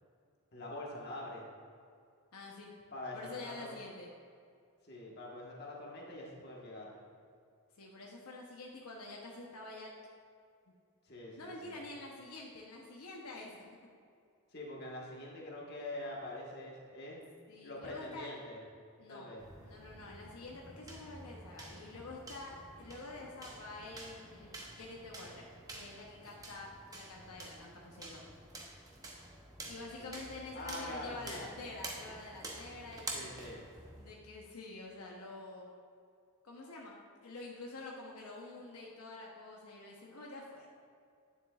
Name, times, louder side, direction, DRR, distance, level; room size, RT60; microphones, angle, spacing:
voice 1, 0.5-1.4 2.9-3.8 4.8-7.0 11.0-11.8 14.5-17.2 17.6-18.6 19.1-19.5 30.0-30.3 30.5-31.4 33.1-33.7, left 1 dB, 45° left, -3 dB, 1.4 m, -45 dB
voice 2, 2.3-2.7 3.1-4.1 7.8-9.9 11.4-13.6 17.5-18.3 19.0-19.3 19.6-28.3 29.7-33.4 34.0-35.7 36.4-37.0 37.2-40.7, left 2 dB, 85° left, -1 dB, 0.9 m, -48 dB
sound 1, 19.4-34.2, right 2 dB, 15° right, 0.8 m, -49 dB
9.5 x 7.2 x 2.4 m, 2.3 s
head